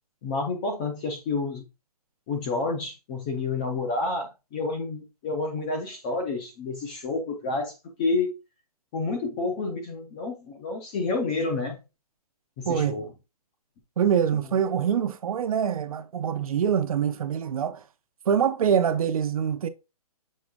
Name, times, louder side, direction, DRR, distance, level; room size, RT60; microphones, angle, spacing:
voice 1, 0.2-1.7 2.3-8.3 8.9-11.8 12.6-13.1, left 3 dB, 10° left, 0.4 m, -29 dB
voice 2, 12.7-13.0 14.0-17.8 18.3-19.7, right 8 dB, 65° right, 0.6 m, -24 dB
6.4 x 3.5 x 2.2 m
hypercardioid pair, 165°, 20 cm